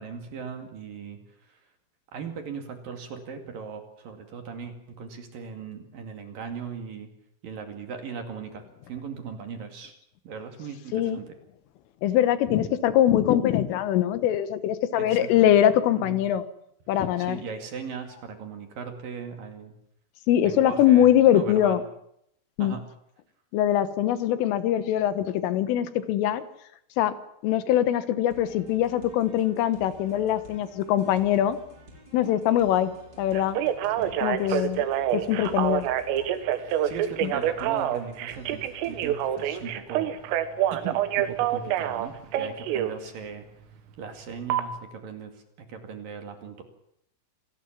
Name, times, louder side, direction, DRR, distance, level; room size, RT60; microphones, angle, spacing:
voice 1, 0.0-1.6 2.1-7.1 7.4-9.9 10.2-11.4 14.9-15.5 15.9-16.2 17.2-19.7 20.4-21.8 22.6-22.8 34.0-34.7 35.1-35.9 36.6-43.4 44.0-46.6, right 6 dB, 50° right, 6 dB, 3.5 m, -39 dB
voice 2, 12.0-16.4 16.9-17.4 20.3-21.8 22.6-22.8 23.5-26.4 27.0-27.1 27.4-31.6 32.1-32.9 33.2-33.6 34.2-34.9 35.1-35.9 37.2-37.3, left 11 dB, 85° left, 12 dB, 3.9 m, -22 dB
sound 1, 28.3-39.7, equal, 20° right, 5.2 m, -51 dB
Telephone, 33.3-42.9 44.5-44.6, right 11 dB, 85° right, 4.0 m, -26 dB
27.0 x 18.5 x 7.4 m, 0.74 s
omnidirectional pair, 5.7 m